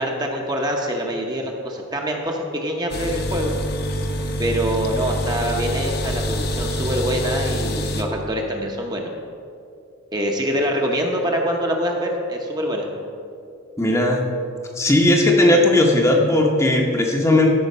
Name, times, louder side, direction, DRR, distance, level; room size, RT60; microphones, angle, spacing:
voice 1, 0.0-3.6 4.4-9.1 10.1-12.9, equal, 20° right, 1 dB, 0.9 m, -25 dB
sound 1, 2.9-8.0, equal, 50° left, 0.8 m, -26 dB
voice 2, 13.8-14.2 14.8-17.5, left 1 dB, 15° left, 0 dB, 0.8 m, -17 dB
13.5 x 5.0 x 5.5 m, 2.4 s
head